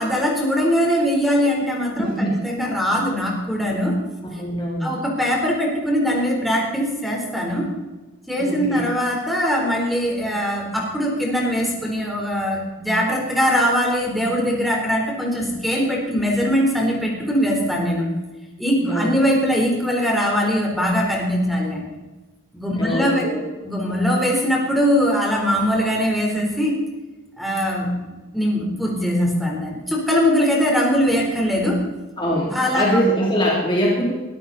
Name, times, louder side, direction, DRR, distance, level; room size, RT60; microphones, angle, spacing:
voice 1, 0.0-4.0 4.8-7.7 8.3-18.1 18.6-21.9 22.5-23.3 23.6-26.8 27.4-28.1 28.3-31.8 32.5-32.8, equal, ahead, -2 dB, 4.0 m, -21 dB
voice 2, 2.0-2.4 4.2-5.0 8.4-8.8 18.8-19.0 22.7-23.4 32.2-34.1, equal, 20° left, -3 dB, 3.2 m, -22 dB
23.0 x 13.5 x 4.2 m, 1.2 s
head